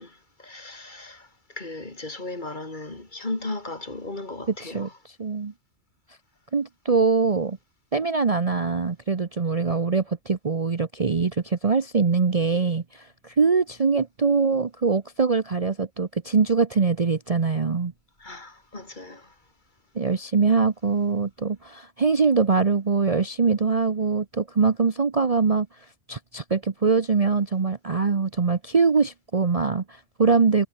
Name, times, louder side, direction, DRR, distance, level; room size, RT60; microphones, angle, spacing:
voice 1, 0.0-5.0 18.2-19.3, left 2 dB, 40° left, 3.3 m, -36 dB
voice 2, 5.2-5.5 6.5-7.6 7.9-17.9 19.9-25.7 26.1-30.7, right 4 dB, 35° right, 0.9 m, -23 dB
omnidirectional pair, 1.3 m